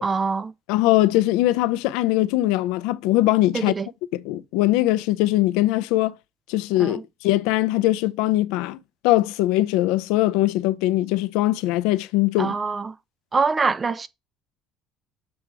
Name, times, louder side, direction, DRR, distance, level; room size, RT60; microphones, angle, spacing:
voice 1, 0.0-0.5 3.5-3.9 6.8-7.0 12.4-12.9 13.3-14.1, right 4 dB, 30° right, 0.7 m, -24 dB
voice 2, 0.7-3.7 4.1-6.1 6.5-8.8 9.0-12.5, left 16 dB, 75° left, 0.5 m, -21 dB
7.6 x 3.4 x 4.7 m
supercardioid pair, 80°, 0 cm